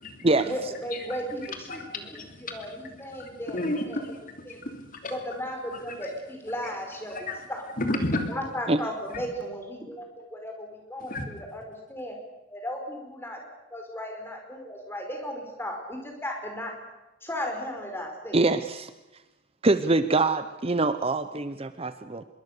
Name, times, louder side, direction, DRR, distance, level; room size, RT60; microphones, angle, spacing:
voice 1, 0.4-3.6 3.9-4.0 4.5-4.6 5.1-7.2 7.5-7.6 8.3-12.2 12.5-13.4 13.7-16.7 17.2-18.4, equal, 10° left, 2 dB, 5.0 m, -35 dB
voice 2, 1.4-4.1 4.5-5.2 5.7-6.1 7.1-7.5 7.8-8.3 9.1-9.2 11.0-11.3, left 1 dB, 45° left, 5 dB, 2.9 m, -33 dB
voice 3, 18.3-18.9 19.6-22.2, right 2 dB, 30° right, 11 dB, 0.8 m, -24 dB
25.0 x 22.5 x 6.8 m, 1.0 s
head